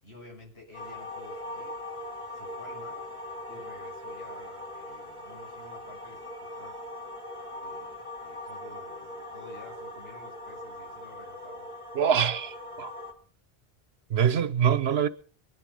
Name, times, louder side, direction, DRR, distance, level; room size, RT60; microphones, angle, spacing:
voice 1, 0.0-1.8 2.3-3.0 3.5-6.9 7.6-11.7, left 2 dB, 90° left, 6.3 m, -51 dB
sound 1, 0.7-13.1, left 1 dB, 30° left, 2.8 m, -41 dB
voice 2, 11.9-12.9 14.1-15.1, right 8 dB, 80° right, 1.1 m, -24 dB
22.5 x 10.5 x 5.3 m
omnidirectional pair, 1.0 m